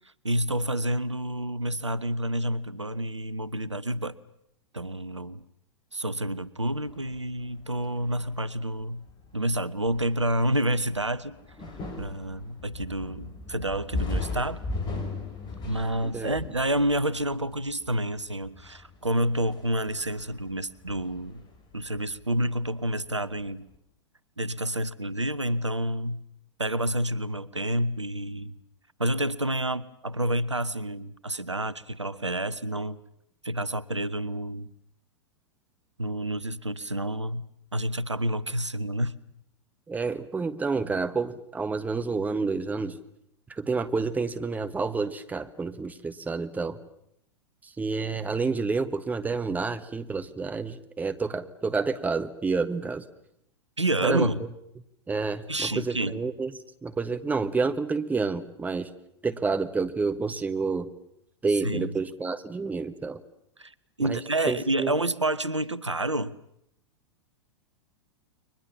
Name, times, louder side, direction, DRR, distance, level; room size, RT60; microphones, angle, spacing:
voice 1, 0.2-4.1 4.7-5.4 5.9-9.0 9.3-11.4 12.0-14.6 15.6-21.4 21.7-23.6 24.4-26.2 26.6-28.5 29.0-33.0 33.4-34.7 36.0-37.5 37.7-39.1 53.8-54.4 55.5-56.2 61.6-61.9 63.6-66.3, right 1 dB, 90° right, 17 dB, 0.9 m, -29 dB
sound 1, 6.9-22.8 23.0-23.7, left 3 dB, 30° left, 4.9 m, -38 dB
voice 2, 16.0-16.4 39.9-43.0 43.5-46.8 47.8-53.0 54.0-54.3 55.1-56.5 56.8-58.9 59.2-60.9 61.4-63.2 64.0-64.2 64.5-64.9, right 4 dB, 10° right, 9 dB, 1.4 m, -29 dB
30.0 x 23.5 x 7.2 m, 0.76 s
figure-of-eight pair, 95°, 15 cm